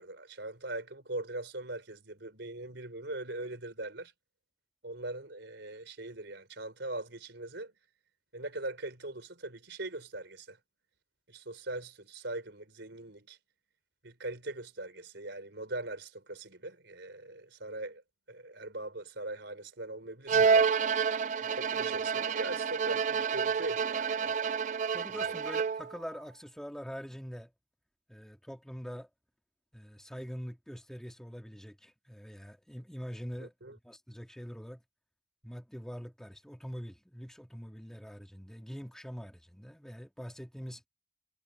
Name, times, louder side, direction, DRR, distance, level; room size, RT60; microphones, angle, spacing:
voice 1, 0.0-4.1 4.8-7.7 8.3-10.6 11.3-13.4 14.0-18.0 18.3-20.7 21.6-24.3 25.2-25.4 33.4-33.8, right 2 dB, 65° right, 4.4 m, -41 dB
Bowed string instrument, 20.3-26.0, right 6 dB, 40° right, 0.3 m, -29 dB
voice 2, 24.9-27.5 28.1-29.1 29.7-34.8 35.4-40.8, equal, 5° left, 2.4 m, -44 dB
head